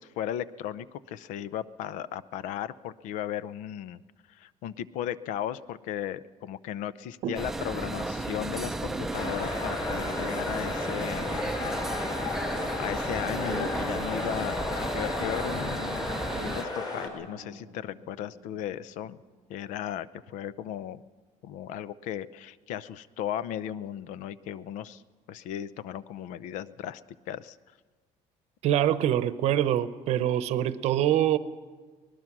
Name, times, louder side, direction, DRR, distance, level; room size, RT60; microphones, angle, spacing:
voice 1, 0.0-4.0 4.3-11.4 12.8-16.1 16.4-19.2 19.5-21.0 21.4-25.0 25.3-27.0 27.3-27.6, left 10 dB, 80° left, 16 dB, 0.7 m, -36 dB
sound 1, 7.3-16.6, right 2 dB, 5° right, 0.5 m, -34 dB
sound 2, 9.1-17.1, left 3 dB, 30° left, 4.1 m, -34 dB
Singing / Musical instrument, 10.2-20.3, left 2 dB, 55° left, 5.0 m, -50 dB
voice 2, 28.6-31.4, right 11 dB, 55° right, 13 dB, 0.8 m, -24 dB
24.0 x 20.0 x 6.1 m, 1.4 s
cardioid pair, 175°, 13 cm